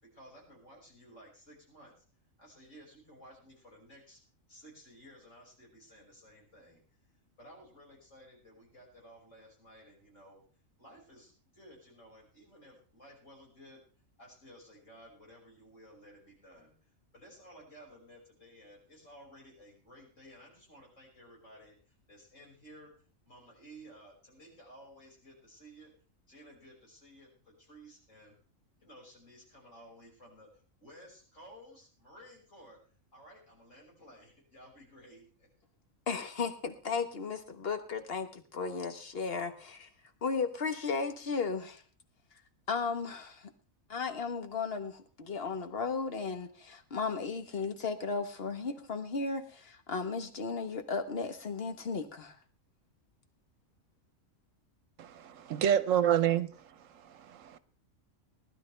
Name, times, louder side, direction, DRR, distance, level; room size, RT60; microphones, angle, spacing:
voice 1, 0.0-2.0 2.4-4.2 4.5-6.8 7.4-10.4 10.8-13.8 14.2-25.9 26.3-28.4 28.8-32.8 33.1-35.5, equal, 65° left, -2 dB, 6.1 m, -55 dB
voice 2, 36.1-39.9 40.2-41.8 42.3-42.4 42.7-43.5 43.9-52.4, left 5 dB, 50° left, 8 dB, 1.4 m, -35 dB
voice 3, 55.0-56.5 57.1-57.6, right 10 dB, 75° right, 15 dB, 1.1 m, -28 dB
20.0 x 11.5 x 3.4 m, 0.40 s
omnidirectional pair, 1.4 m